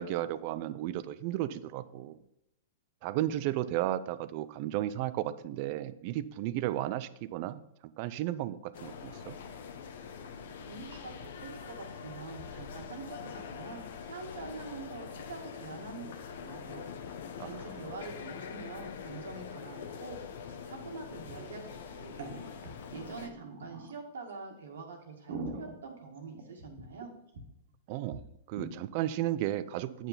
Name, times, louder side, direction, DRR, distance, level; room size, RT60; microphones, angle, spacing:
voice 1, 0.0-2.2 3.0-9.4 17.4-17.6 27.9-28.2 28.5-30.1, right 13 dB, 50° right, 15 dB, 0.5 m, -34 dB
sound 1, 8.7-23.3, left 6 dB, 70° left, 0.9 m, -44 dB
voice 2, 10.7-16.1 16.4-16.9 17.4-22.2 22.6-27.1, right 4 dB, 85° right, 2 dB, 1.9 m, -45 dB
sound 2, 20.1-20.2 20.4-20.5 21.1-21.5 22.0-24.0 24.5-24.6 25.0-27.0 27.3-27.4 27.7-27.8 28.1-28.2 28.5-28.7, right 3 dB, 70° right, 1.7 m, -43 dB
8.9 x 5.7 x 4.1 m, 0.87 s
hypercardioid pair, 130°, 0 cm